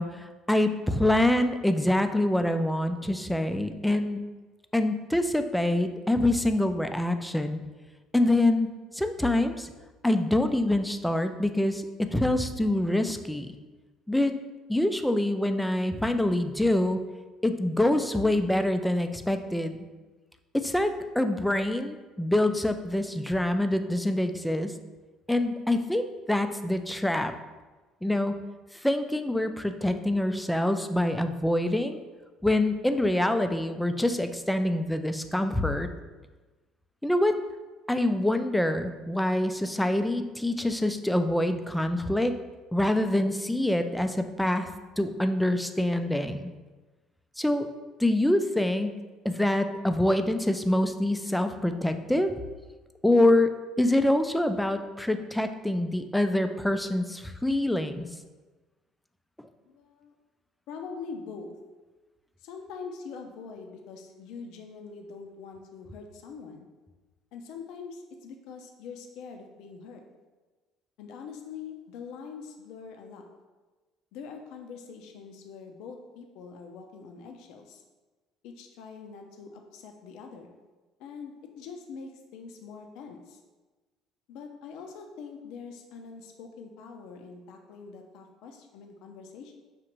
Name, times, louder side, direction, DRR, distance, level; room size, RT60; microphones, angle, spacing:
voice 1, 0.0-4.3 4.7-7.6 8.1-8.7 8.9-9.7 10.0-13.5 14.1-14.3 14.7-17.0 17.4-19.9 20.5-20.9 21.2-24.7 25.3-27.3 28.0-28.4 28.7-32.0 32.4-35.9 37.0-37.4 37.9-42.3 42.7-44.7 45.0-46.5 47.4-47.7 48.0-49.0 49.2-52.3 53.0-53.5 53.8-58.1, left 1 dB, 5° left, 8 dB, 0.3 m, -25 dB
voice 2, 59.6-60.2 60.7-61.6 62.4-66.7 67.3-70.0 71.0-73.3 74.1-77.8 78.4-80.6 81.0-83.4 84.3-89.5, left 5 dB, 75° left, 4 dB, 0.4 m, -43 dB
6.0 x 2.4 x 3.0 m, 1.3 s
supercardioid pair, 100°, 0 cm